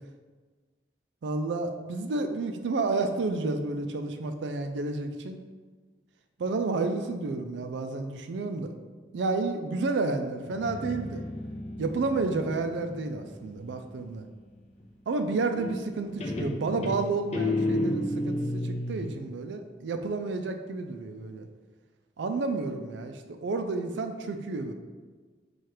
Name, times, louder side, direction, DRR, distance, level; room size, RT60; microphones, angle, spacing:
voice 1, 1.2-5.4 6.4-8.7 9.1-11.2 11.8-14.2 15.1-21.5 22.2-24.7, right 3 dB, 80° right, 7 dB, 0.4 m, -30 dB
Guitar, 10.4-14.0 15.6-19.1, left 1 dB, 40° left, 0.5 m, -32 dB
4.3 x 2.4 x 4.8 m, 1.4 s
head